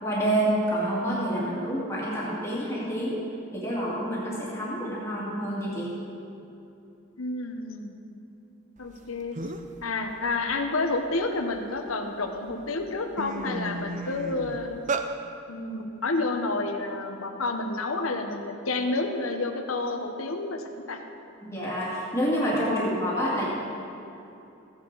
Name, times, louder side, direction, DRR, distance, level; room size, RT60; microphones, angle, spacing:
voice 1, 0.0-3.2 3.5-5.9 21.4-23.5, equal, 15° left, -7 dB, 2.2 m, -28 dB
voice 2, 7.2-7.9 8.8-9.4 9.8-14.8 15.5-21.0, left 3 dB, 80° left, 5 dB, 1.1 m, -30 dB
sound 1, 9.0-9.1 9.4-9.8 10.2-11.8 12.4-12.5 12.8-15.1, right 3 dB, 35° right, 0.6 m, -33 dB
15.0 x 9.6 x 4.0 m, 2.8 s
head